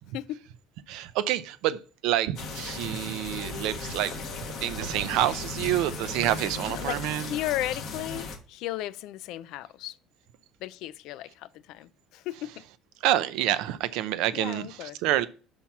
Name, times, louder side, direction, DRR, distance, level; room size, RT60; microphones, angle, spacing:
voice 1, 0.9-4.2 4.5-7.4 13.0-15.3, right 13 dB, 60° right, 0.5 m, -28 dB
sound 1, 2.4-8.4, left 4 dB, 35° left, 1.1 m, -37 dB
voice 2, 6.7-7.0 7.3-10.0 10.6-12.6 14.3-15.0, left 14 dB, 55° left, 0.3 m, -35 dB
5.7 x 4.3 x 5.8 m
cardioid pair, 180°, 0 cm